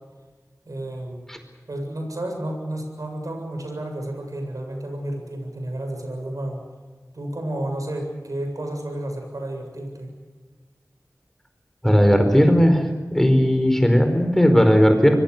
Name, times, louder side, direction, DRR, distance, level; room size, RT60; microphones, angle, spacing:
voice 1, 0.7-1.3 1.7-6.6 7.1-10.1, right 1 dB, 70° right, 3 dB, 7.5 m, -31 dB
voice 2, 11.8-12.9 13.1-15.2, equal, 5° left, 5 dB, 4.8 m, -16 dB
25.0 x 23.0 x 7.0 m, 1.4 s
wide cardioid pair, 50°, 6 cm